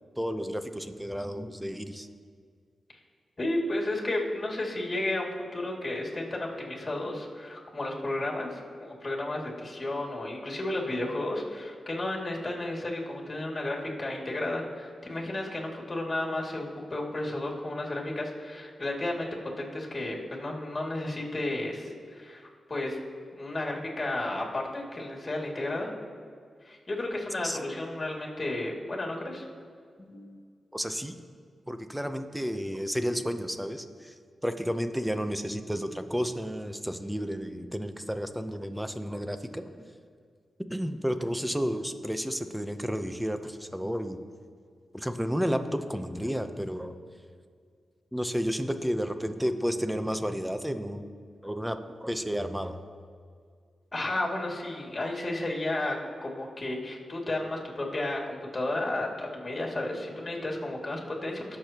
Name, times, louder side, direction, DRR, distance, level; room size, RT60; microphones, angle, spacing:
voice 1, 0.2-2.1 27.4-27.6 30.7-31.2 31.7-34.1 34.4-39.6 40.7-44.2 44.9-46.9 48.1-51.1 51.4-52.8, equal, 5° right, 8 dB, 0.8 m, -31 dB
voice 2, 3.4-19.3 19.6-23.0 23.3-25.9 26.6-29.4 30.0-30.4 53.9-56.0 56.2-61.4, left 2 dB, 35° left, -2 dB, 2.5 m, -33 dB
19.5 x 6.9 x 3.0 m, 2.1 s
cardioid pair, 60°, 0 cm